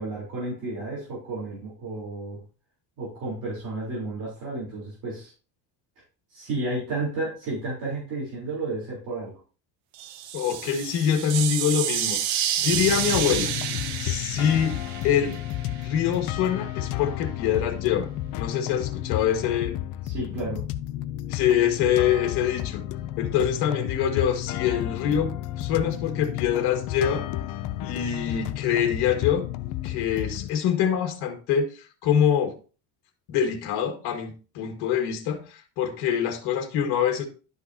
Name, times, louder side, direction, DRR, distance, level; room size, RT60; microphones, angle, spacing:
voice 1, 0.0-2.4 3.0-5.3 6.3-9.3 20.0-20.6, right 2 dB, 50° right, 3.8 m, -32 dB
sound 1, 9.9-15.8, right 10 dB, 90° right, 1.1 m, -29 dB
voice 2, 10.3-13.5 14.0-15.4 15.7-18.1 18.4-19.8 21.3-22.8 23.2-27.2 27.8-29.5 29.8-32.5 33.3-37.3, left 8 dB, 75° left, 1.8 m, -25 dB
sound 2, 12.7-30.5, left 13 dB, 50° left, 0.5 m, -32 dB
11.5 x 5.8 x 2.8 m
cardioid pair, 170°, 40 cm